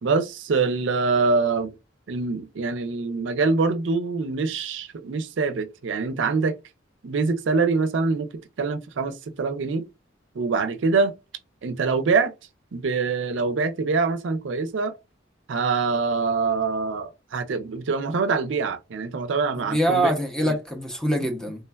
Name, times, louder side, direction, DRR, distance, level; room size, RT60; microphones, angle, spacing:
voice 1, 0.0-1.7 2.1-6.6 7.0-8.3 8.6-9.9 10.3-11.1 11.6-12.3 12.7-14.9 15.5-20.1 20.4-20.6, right 4 dB, 70° right, 0.4 m, -24 dB
voice 2, 19.6-21.6, right 1 dB, 5° left, 0.6 m, -24 dB
3.3 x 2.2 x 2.2 m
head